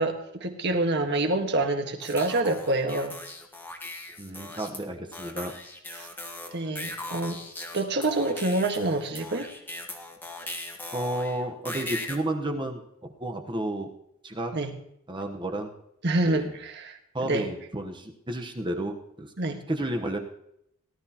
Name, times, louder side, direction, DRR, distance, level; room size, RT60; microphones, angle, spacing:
voice 1, 0.0-3.2 6.0-6.1 6.5-7.4 7.7-9.5 14.5-14.8 16.0-17.5 19.4-19.6, right 2 dB, 50° right, 5 dB, 1.6 m, -27 dB
sound 1, 2.0-4.8 5.1-12.2, left 2 dB, 10° left, 1.6 m, -39 dB
voice 2, 4.2-5.6 10.9-13.9 14.2-14.6 15.1-15.7 16.2-16.5 17.1-19.3 19.7-20.2, right 1 dB, 20° right, 3 dB, 1.1 m, -32 dB
18.5 x 12.5 x 3.0 m, 0.74 s
head